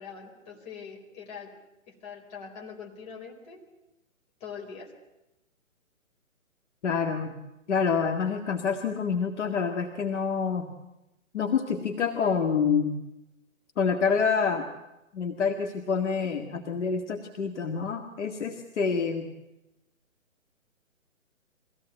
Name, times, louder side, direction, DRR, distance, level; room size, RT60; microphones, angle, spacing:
voice 1, 0.0-1.5 1.9-3.6 4.4-4.9, left 6 dB, 30° left, 0 dB, 4.5 m, -43 dB
voice 2, 6.8-7.3 7.7-10.7 11.3-13.0 13.8-14.7 15.1-19.3, left 6 dB, 60° left, 4 dB, 2.0 m, -27 dB
23.5 x 17.0 x 9.1 m, 0.92 s
hypercardioid pair, 150°, 41 cm